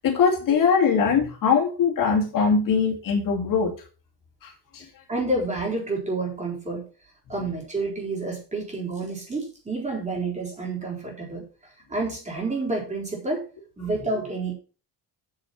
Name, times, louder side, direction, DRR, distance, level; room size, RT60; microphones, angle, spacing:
voice 1, 0.0-3.7 4.7-4.8, left 6 dB, 50° left, 1 dB, 2.4 m, -21 dB
voice 2, 5.1-6.8 7.3-11.4 11.9-13.4 13.8-14.6, right 2 dB, 15° right, -2 dB, 3.9 m, -29 dB
7.7 x 7.0 x 5.8 m, 0.36 s
cardioid pair, 170°, 41 cm